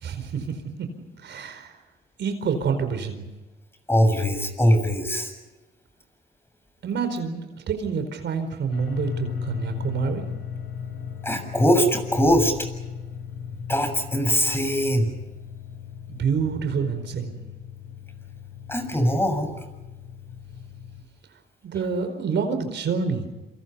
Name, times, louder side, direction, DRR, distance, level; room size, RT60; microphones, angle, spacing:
voice 1, 0.0-0.9 1.2-1.7 2.2-3.3 6.8-10.3 16.1-17.4 21.6-23.3, right 6 dB, 65° right, 8 dB, 4.7 m, -27 dB
voice 2, 3.9-5.3 11.2-12.5 13.7-15.1 18.7-19.6, equal, 10° left, 6 dB, 7.1 m, -21 dB
sound 1, 8.7-21.0, left 7 dB, 80° left, 4.2 m, -36 dB
28.0 x 27.0 x 5.6 m, 1.1 s
cardioid pair, 90°, 20 cm